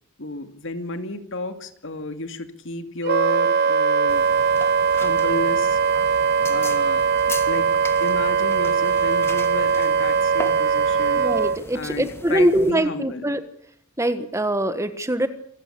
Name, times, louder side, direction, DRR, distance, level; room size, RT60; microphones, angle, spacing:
voice 1, 0.2-4.3 4.9-5.8 6.4-7.0 7.5-11.3 11.7-13.3, left 2 dB, 60° left, 9 dB, 2.4 m, -32 dB
Wind instrument woodwind instrument, 3.1-11.6, right 6 dB, 50° right, 1.0 m, -20 dB
sound 1, 4.1-12.7, left 2 dB, 10° left, 1.9 m, -38 dB
voice 2, 11.2-13.4 14.0-15.3, right 1 dB, 15° right, 11 dB, 1.5 m, -22 dB
27.0 x 16.0 x 8.5 m, 0.65 s
head